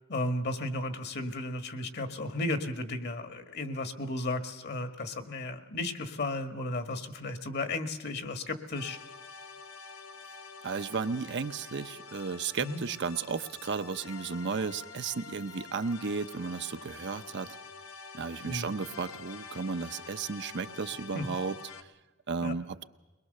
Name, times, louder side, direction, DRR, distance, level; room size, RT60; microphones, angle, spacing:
voice 1, 0.1-9.0 12.6-12.8 18.4-18.7 21.1-21.3 22.4-22.5, left 2 dB, 50° left, 8 dB, 1.5 m, -34 dB
sound 1, 8.7-21.8, left 5 dB, 85° left, 1.1 m, -47 dB
voice 2, 10.6-17.6 18.1-21.6 22.3-22.8, right 5 dB, 55° right, 10 dB, 0.7 m, -34 dB
22.0 x 21.5 x 6.6 m, 1.1 s
head